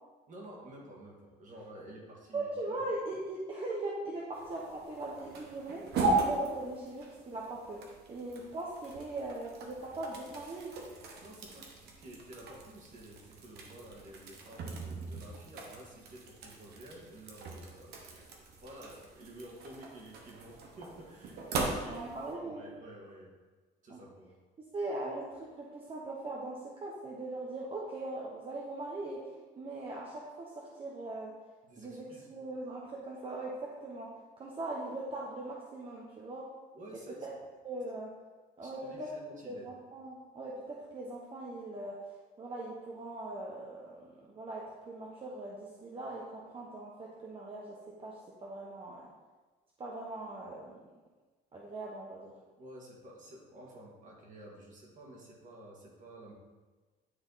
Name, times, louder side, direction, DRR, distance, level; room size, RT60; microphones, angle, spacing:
voice 1, 0.3-2.8 11.2-23.3 23.8-24.3 31.6-32.3 36.7-37.3 38.6-39.7 52.6-56.3, right 1 dB, 50° right, -2 dB, 2.0 m, -51 dB
voice 2, 2.3-7.8 8.1-10.7 21.9-22.6 23.9-24.0 24.7-31.3 31.8-33.5 33.8-34.1 34.4-36.5 37.6-38.1 38.6-39.1 39.5-42.0 42.4-49.1 49.8-50.9 51.5-52.3, right 2 dB, 35° right, -3 dB, 1.0 m, -40 dB
sound 1, 4.3-22.3, right 2 dB, 70° right, 1.2 m, -39 dB
9.8 x 3.4 x 4.1 m, 1.3 s
cardioid pair, 110°, 17 cm